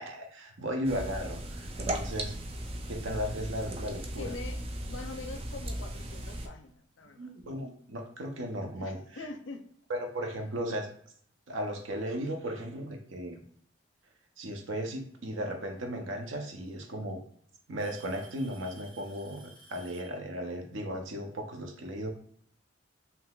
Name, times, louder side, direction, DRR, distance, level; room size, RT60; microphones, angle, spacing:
voice 1, 0.0-2.3 2.9-4.3 7.2-9.0 9.9-10.9 11.5-13.4 14.4-17.2 17.7-19.4 19.7-22.1, equal, 80° right, 3 dB, 0.7 m, -36 dB
sound 1, 0.8-6.5, right 1 dB, 30° right, 0.3 m, -37 dB
voice 2, 4.2-4.6 4.9-7.3 8.7-9.6, left 3 dB, 80° left, 6 dB, 0.5 m, -43 dB
Alarm / Tick-tock, 7.4-7.5 8.2-8.3 10.0-10.1 11.4-11.5 12.7-13.1 14.9-15.0 16.2-16.3 16.7-17.1 17.8-20.2, right 3 dB, 50° right, 1.5 m, -55 dB
3.7 x 2.8 x 2.3 m, 0.62 s
head